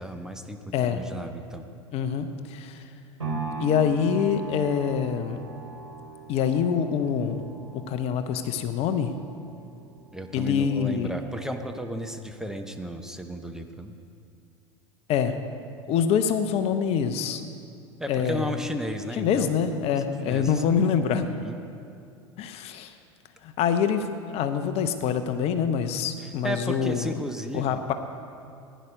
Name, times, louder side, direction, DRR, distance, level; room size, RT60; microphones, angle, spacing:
voice 1, 0.0-1.6 10.1-13.9 18.0-19.5 20.2-20.6 21.2-21.6 26.2-27.8, equal, 5° right, 5 dB, 0.9 m, -34 dB
voice 2, 1.9-2.8 3.6-5.4 6.3-7.5 7.7-9.2 10.3-11.1 15.1-15.4 15.9-17.5 18.1-18.5 19.1-21.3 22.4-22.9 23.4-27.1 27.5-27.9, left 7 dB, 40° left, 9 dB, 0.8 m, -25 dB
sound 1, 3.2-11.3 11.8-11.9, right 3 dB, 85° right, 2.5 m, -39 dB
16.0 x 10.0 x 5.2 m, 2.5 s
figure-of-eight pair, 80°, 15 cm